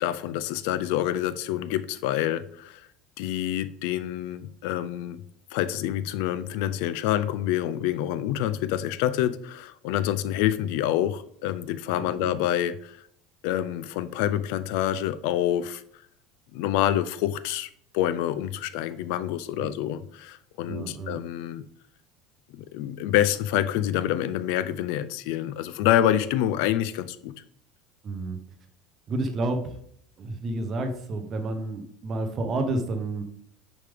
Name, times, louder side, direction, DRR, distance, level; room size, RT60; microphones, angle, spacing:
voice 1, 0.0-2.8 3.2-5.2 5.5-13.0 13.4-15.8 16.5-21.6 22.5-27.3, left 12 dB, 60° left, 0.4 m, -27 dB
voice 2, 19.6-19.9 20.7-21.2 28.0-28.4 29.1-29.8 30.2-33.2, right 2 dB, 25° right, 0.7 m, -30 dB
6.6 x 5.0 x 3.5 m
cardioid pair, 180°, 0 cm